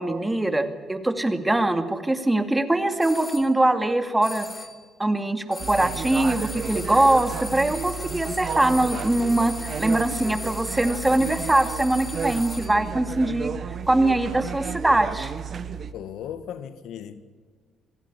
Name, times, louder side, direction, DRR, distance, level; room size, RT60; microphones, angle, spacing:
voice 1, 0.0-4.5 5.0-13.5 13.9-15.3, right 1 dB, 10° right, 2.3 m, -22 dB
sound 1, 3.0-3.5 4.2-4.9 5.5-12.9, left 2 dB, 20° left, 2.1 m, -38 dB
sound 2, 5.6-15.9, right 6 dB, 45° right, 1.2 m, -33 dB
voice 2, 15.9-17.2, left 9 dB, 80° left, 1.9 m, -36 dB
26.5 x 17.5 x 9.9 m
cardioid pair, 110°, 0 cm